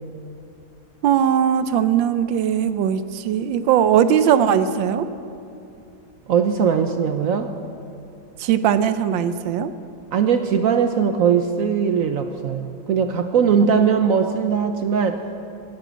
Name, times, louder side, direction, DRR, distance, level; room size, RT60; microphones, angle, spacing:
voice 1, 1.0-5.1 8.4-9.7, right 9 dB, 85° right, 12 dB, 1.4 m, -19 dB
voice 2, 6.3-7.5 10.1-15.2, right 6 dB, 65° right, 8 dB, 0.8 m, -20 dB
17.0 x 9.2 x 8.2 m, 2.6 s
omnidirectional pair, 2.0 m